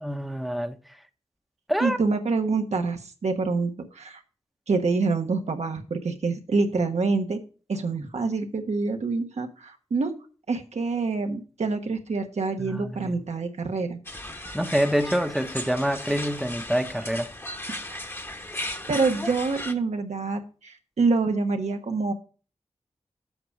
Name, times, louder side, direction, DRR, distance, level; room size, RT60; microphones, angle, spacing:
voice 1, 0.0-0.8 1.7-2.0 12.6-13.3 14.5-17.3, equal, ahead, 0.9 m, -26 dB
voice 2, 1.8-4.2 4.7-7.4 7.7-10.1 10.5-14.0 17.7-18.0 18.9-22.1, right 4 dB, 90° right, 1.2 m, -26 dB
sound 1, 14.0-19.7, left 1 dB, 20° left, 1.1 m, -36 dB
8.0 x 5.0 x 7.0 m
wide cardioid pair, 75°, 11 cm